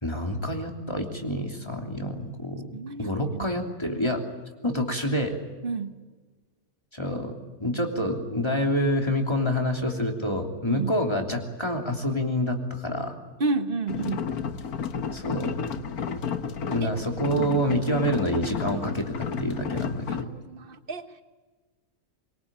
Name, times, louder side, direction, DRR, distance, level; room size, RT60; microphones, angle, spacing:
voice 1, 0.0-2.7 3.0-4.2 4.6-5.4 6.9-7.3 7.6-13.1 15.1-15.6 16.7-20.3, equal, 20° left, 2 dB, 3.2 m, -27 dB
voice 2, 2.7-3.5 5.6-6.0 10.7-10.9 13.4-14.3 16.8-16.9 17.4-17.8 20.1-21.2, right 4 dB, 40° right, 9 dB, 1.5 m, -31 dB
sound 1, 13.9-20.2, left 6 dB, 90° left, 1.7 m, -32 dB
24.0 x 23.5 x 8.9 m, 1.3 s
omnidirectional pair, 1.5 m